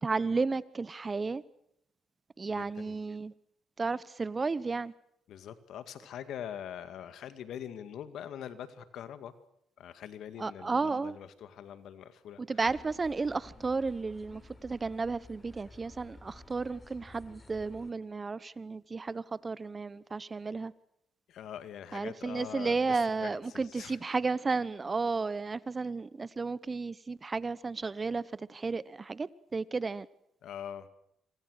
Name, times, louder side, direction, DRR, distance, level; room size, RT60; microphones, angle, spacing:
voice 1, 0.0-1.4 2.4-3.3 3.8-4.9 10.4-11.2 12.4-20.7 21.9-30.1, right 4 dB, 30° right, 1.0 m, -33 dB
voice 2, 2.5-3.0 5.3-9.3 9.8-12.4 21.3-24.0 30.4-30.9, left 9 dB, 75° left, 2.2 m, -43 dB
sound 1, 12.6-17.9, left 2 dB, 25° left, 4.3 m, -53 dB
27.0 x 25.0 x 6.6 m
cardioid pair, 90°, 0 cm